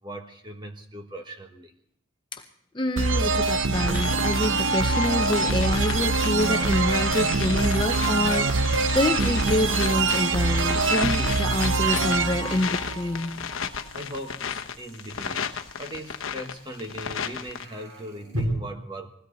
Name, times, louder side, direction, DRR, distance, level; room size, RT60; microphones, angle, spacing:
voice 1, 0.0-1.7 13.9-19.1, equal, 20° right, 4 dB, 1.4 m, -39 dB
voice 2, 2.7-13.5, left 1 dB, 20° left, 4 dB, 0.7 m, -27 dB
sound 1, 3.0-13.6, right 3 dB, 60° right, 0.7 m, -24 dB
sound 2, 3.7-17.7, left 7 dB, 70° left, 0.9 m, -35 dB
sound 3, 4.8-4.9 8.3-18.4, equal, 80° right, 4.9 m, -44 dB
20.5 x 16.5 x 4.1 m, 0.68 s
head